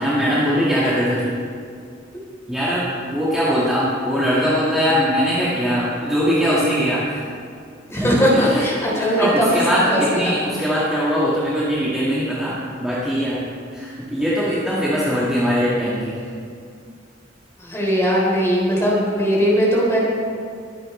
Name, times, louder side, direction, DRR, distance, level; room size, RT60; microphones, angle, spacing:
voice 1, 0.0-1.3 2.5-7.2 8.3-8.6 9.0-13.4 13.7-16.2, equal, 5° right, -9 dB, 1.8 m, -21 dB
voice 2, 7.9-9.6 9.9-10.3 17.6-20.0, equal, 15° left, -5 dB, 3.6 m, -19 dB
22.0 x 9.4 x 3.3 m, 2.3 s
head